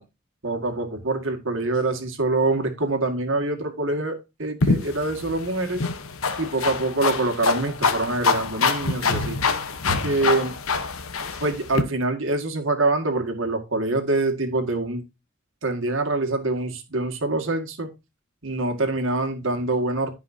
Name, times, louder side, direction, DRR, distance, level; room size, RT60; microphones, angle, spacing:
voice 1, 0.4-5.8 6.4-9.4 10.0-10.5 11.4-15.0 15.6-17.9 18.4-20.1, right 2 dB, 65° right, 2.1 m, -25 dB
sound 1, 4.6-11.8, left 4 dB, 90° left, 1.1 m, -25 dB
15.5 x 5.6 x 2.8 m
head